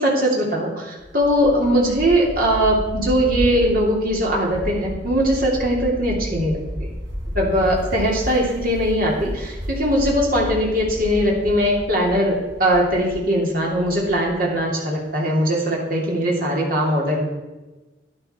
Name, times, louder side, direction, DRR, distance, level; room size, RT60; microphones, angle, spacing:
voice 1, 0.0-6.6 7.3-17.2, equal, 50° right, -2 dB, 2.9 m, -20 dB
sound 1, 1.0-14.6, equal, 85° right, 3.6 m, -32 dB
11.0 x 10.5 x 4.5 m, 1.1 s
head